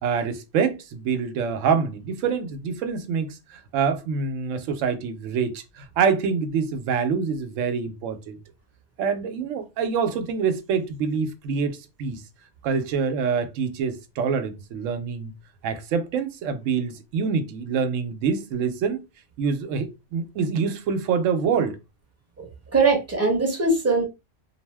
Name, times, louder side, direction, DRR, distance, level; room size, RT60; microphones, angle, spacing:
voice 1, 0.0-8.4 9.0-12.2 12.6-15.3 15.6-19.0 19.4-21.8, right 6 dB, 90° right, 0.9 m, -26 dB
voice 2, 22.4-24.0, right 3 dB, 15° right, 0.7 m, -21 dB
2.6 x 2.0 x 3.2 m
omnidirectional pair, 1.3 m